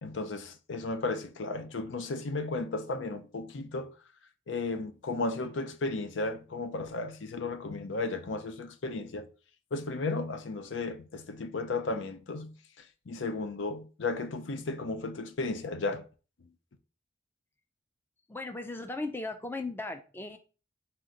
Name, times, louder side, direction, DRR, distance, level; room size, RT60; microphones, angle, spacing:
voice 1, 0.0-3.9 4.5-9.3 9.7-12.5 13.1-16.0, left 3 dB, 80° left, 0.6 m, -34 dB
voice 2, 18.3-20.4, left 2 dB, 10° left, 0.4 m, -37 dB
4.2 x 2.9 x 3.7 m
head